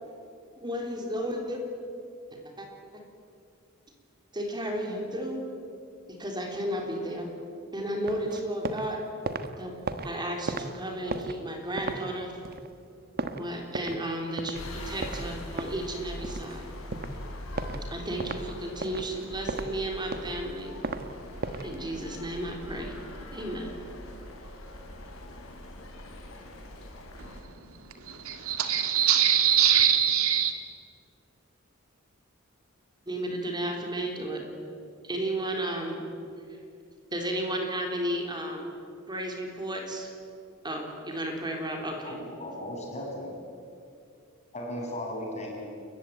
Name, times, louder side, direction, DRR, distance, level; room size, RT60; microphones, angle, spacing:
voice 1, 0.6-1.6 2.3-2.7 4.3-5.4 6.1-7.3 7.7-9.0 9.6-9.7 10.0-12.4 13.3-16.7 17.9-20.8 21.6-22.9 23.3-23.7 33.1-34.4 35.0-36.1 36.5-36.6 37.1-38.7 39.1-40.1 40.6-42.2, right 1 dB, 20° right, 3.5 m, -33 dB
sound 1, 8.0-8.9 9.1-14.1 14.4-14.6 15.0-16.6 16.9-17.2 17.6-17.8 18.2-18.4 18.8-19.7 20.0-21.0 21.4-21.7, right 3 dB, 45° right, 1.3 m, -35 dB
sound 2, 14.5-27.4, left 1 dB, 75° left, 4.0 m, -42 dB
voice 2, 28.0-30.5, right 9 dB, 75° right, 2.3 m, -23 dB
voice 3, 42.0-43.5 44.5-45.7, left 1 dB, 30° left, 6.7 m, -36 dB
29.5 x 15.0 x 9.2 m
head